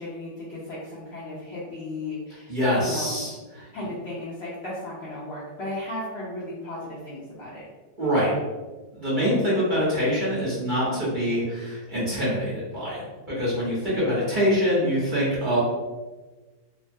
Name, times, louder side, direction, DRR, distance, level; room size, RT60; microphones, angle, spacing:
voice 1, 0.0-3.3 3.7-7.6, left 1 dB, 70° left, -7 dB, 0.6 m, -35 dB
voice 2, 2.5-3.3 3.6-3.7 8.0-8.3 8.9-15.6, equal, 30° right, -10 dB, 1.0 m, -24 dB
3.0 x 2.2 x 2.6 m, 1.2 s
omnidirectional pair, 1.9 m